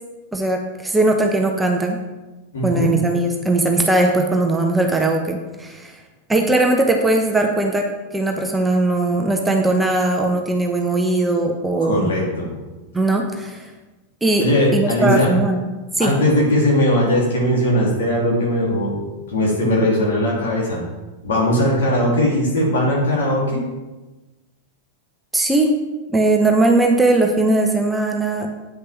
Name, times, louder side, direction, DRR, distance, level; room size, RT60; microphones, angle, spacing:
voice 1, 0.3-2.0 2.6-5.9 6.3-7.9 8.1-12.1 12.9-13.7 14.2-15.7 16.0-16.1 25.3-25.7 26.1-28.5, right 2 dB, 10° right, 2 dB, 1.0 m, -19 dB
voice 2, 2.5-2.9 11.8-12.5 14.4-15.3 16.0-19.0 19.3-20.8 21.2-23.6, left 1 dB, 60° left, -3 dB, 3.5 m, -19 dB
9.3 x 6.6 x 4.6 m, 1.2 s
figure-of-eight pair, 90°, 0 cm